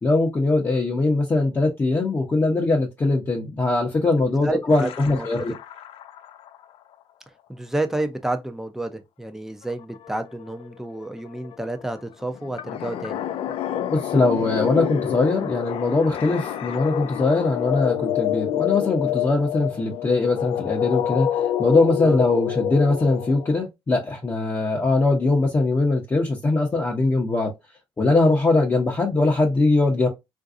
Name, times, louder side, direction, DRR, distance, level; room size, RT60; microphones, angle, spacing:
voice 1, 0.0-5.5 13.9-27.5 28.0-30.1, left 2 dB, 25° left, 0.8 m, -21 dB
voice 2, 4.4-5.5 7.5-13.2 22.0-22.2, right 2 dB, 5° right, 0.6 m, -30 dB
sound 1, 4.7-6.6 9.6-9.7 9.9-23.6, left 10 dB, 80° left, 0.4 m, -28 dB
3.8 x 2.6 x 2.5 m
cardioid pair, 115°, 9 cm